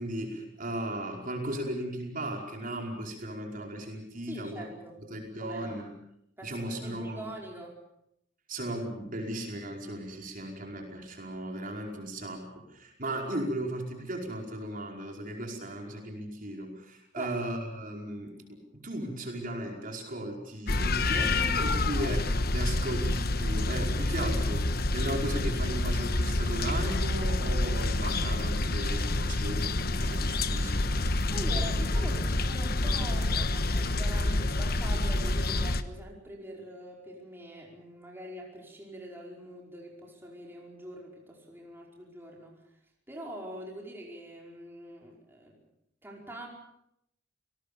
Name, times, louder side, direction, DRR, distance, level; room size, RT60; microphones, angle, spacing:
voice 1, 0.0-4.7 5.1-5.9 6.4-7.2 8.5-31.1, right 1 dB, 45° right, 1 dB, 5.2 m, -36 dB
voice 2, 4.2-5.0 5.4-5.8 6.4-7.8 17.2-17.4 31.3-42.6 43.1-45.6 46.0-46.5, right 1 dB, 10° right, -1 dB, 5.2 m, -44 dB
sound 1, 20.7-35.8, left 2 dB, 55° left, 1.3 m, -28 dB
29.0 x 19.5 x 7.0 m, 0.77 s
head